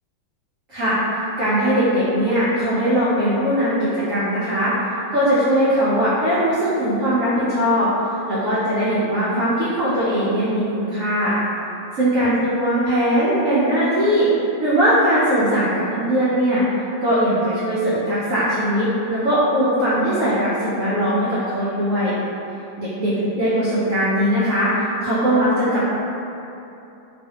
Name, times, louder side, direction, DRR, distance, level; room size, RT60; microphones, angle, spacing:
voice 1, 1.4-4.7 5.1-7.9 8.3-11.4 11.9-14.3 14.6-16.6 17.0-22.1 22.8-25.9, equal, 90° right, -10 dB, 0.7 m, -20 dB
3.1 x 2.4 x 2.8 m, 2.8 s
omnidirectional pair, 2.1 m